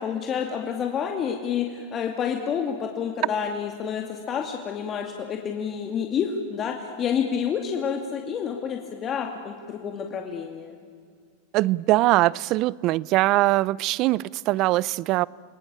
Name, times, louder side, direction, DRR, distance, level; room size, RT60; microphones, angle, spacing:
voice 1, 0.0-10.8, left 7 dB, 35° left, 2.4 m, -29 dB
voice 2, 11.5-15.3, right 18 dB, 50° right, 0.5 m, -22 dB
28.5 x 19.0 x 8.7 m
hypercardioid pair, 110°, 0 cm